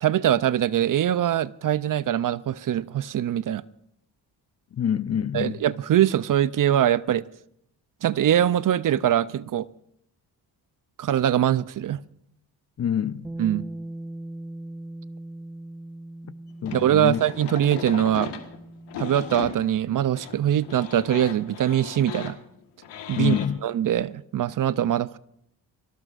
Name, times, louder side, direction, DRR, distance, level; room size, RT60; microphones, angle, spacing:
voice 1, 0.0-3.6 5.3-7.2 8.0-9.7 11.0-12.0 13.4-13.6 16.7-18.4 19.0-22.4 23.1-25.2, right 11 dB, 55° right, 0.5 m, -23 dB
voice 2, 4.7-5.6 12.8-13.3 16.6-17.2 23.2-23.6, left 8 dB, 40° left, 0.5 m, -26 dB
Bass guitar, 13.2-19.5, right 1 dB, 5° right, 1.2 m, -40 dB
sound 1, 16.7-23.5, left 8 dB, 90° left, 1.5 m, -38 dB
24.5 x 17.0 x 2.5 m
cardioid pair, 80°, 40 cm